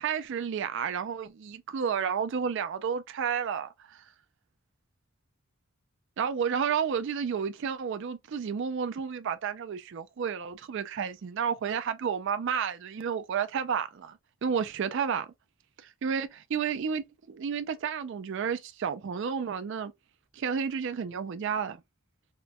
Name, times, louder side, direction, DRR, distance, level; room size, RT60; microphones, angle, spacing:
voice 1, 0.0-4.0 6.2-15.3 15.8-19.9 20.3-21.8, right 7 dB, 60° right, 0.4 m, -31 dB
4.3 x 2.1 x 2.3 m
head